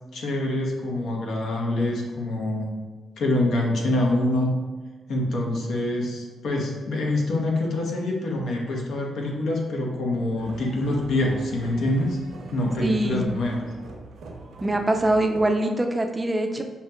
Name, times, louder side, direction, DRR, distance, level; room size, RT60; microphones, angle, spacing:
voice 1, 0.1-2.7 3.2-4.5 5.1-12.2 12.5-13.7, left 1 dB, 75° left, -1 dB, 0.7 m, -25 dB
sound 1, 10.4-15.5, right 3 dB, 80° right, 0.7 m, -42 dB
voice 2, 12.8-13.3 14.6-16.6, right 1 dB, 15° right, 4 dB, 0.4 m, -23 dB
5.6 x 2.8 x 2.2 m, 1.4 s
cardioid pair, 85°, 0 cm